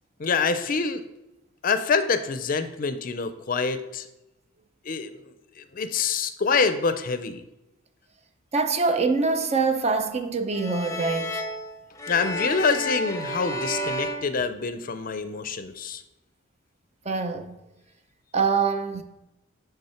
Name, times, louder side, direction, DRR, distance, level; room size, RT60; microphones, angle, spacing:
voice 1, 0.2-1.0 1.6-4.1 4.9-5.3 5.7-7.4 12.1-16.0, left 5 dB, 45° left, 0.5 m, -26 dB
voice 2, 8.5-11.4 17.1-17.5 18.3-19.0, right 4 dB, 35° right, 0.6 m, -24 dB
sound 1, 10.5-15.1, left 1 dB, 15° left, 0.7 m, -32 dB
8.5 x 3.6 x 5.7 m
head